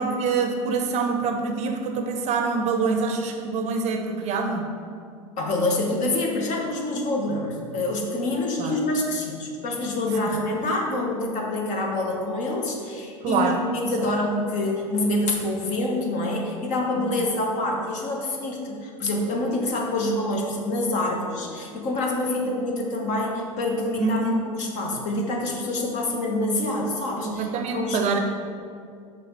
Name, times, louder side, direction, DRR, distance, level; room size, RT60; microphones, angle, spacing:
voice 1, 0.0-4.7 8.6-8.7 13.2-13.6 14.0-14.1 17.1-17.2 24.0-24.4 27.2-28.2, right 4 dB, 40° right, 5 dB, 0.6 m, -25 dB
voice 2, 5.4-28.2, left 2 dB, 45° left, 0 dB, 1.2 m, -26 dB
5.7 x 3.5 x 5.4 m, 2.3 s
hypercardioid pair, 85°, 18 cm